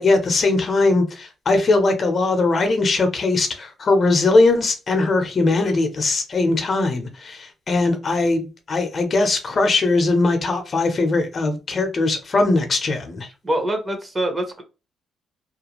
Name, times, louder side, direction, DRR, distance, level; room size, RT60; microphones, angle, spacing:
voice 1, 0.0-13.3, left 3 dB, 45° left, 0.7 m, -20 dB
voice 2, 13.4-14.6, right 1 dB, 25° right, 0.8 m, -24 dB
2.4 x 2.2 x 2.9 m
cardioid pair, 90°, 0 cm